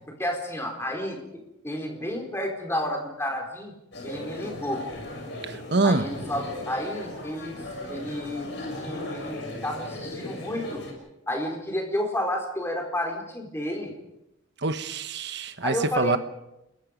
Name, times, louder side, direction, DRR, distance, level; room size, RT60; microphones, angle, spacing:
voice 1, 0.2-3.7 4.0-4.8 5.8-7.6 7.9-10.8 11.3-13.9 15.6-16.2, left 1 dB, 10° left, 4.5 m, -31 dB
sound 1, 3.9-10.9, left 1 dB, 55° left, 6.8 m, -37 dB
voice 2, 5.5-6.1 14.6-16.2, right 3 dB, 55° right, 1.2 m, -25 dB
30.0 x 22.0 x 5.3 m
head